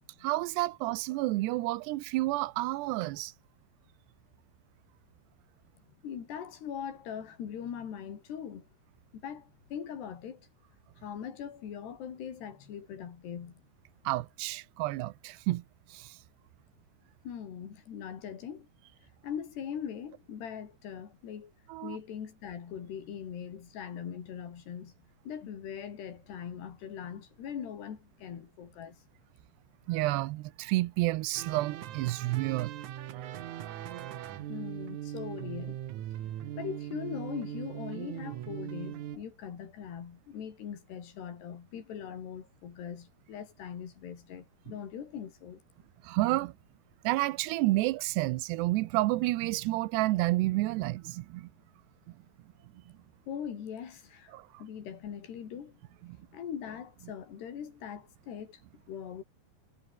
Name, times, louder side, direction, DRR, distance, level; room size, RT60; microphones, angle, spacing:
voice 1, 0.2-3.3 14.1-15.6 15.9-16.2 21.7-22.0 29.9-32.7 46.0-46.5 47.0-51.5 54.3-54.5 56.0-56.2, right 18 dB, 90° right, 3.0 m, -30 dB
voice 2, 6.0-8.7 9.1-10.5 11.0-13.6 17.3-18.7 19.2-21.5 21.8-24.9 25.3-29.0 34.5-35.8 36.4-45.6 53.3-55.8 56.3-58.6 58.9-59.2, left 8 dB, 80° left, 5.3 m, -41 dB
sound 1, 31.3-39.2, right 12 dB, 65° right, 2.1 m, -40 dB
omnidirectional pair, 4.7 m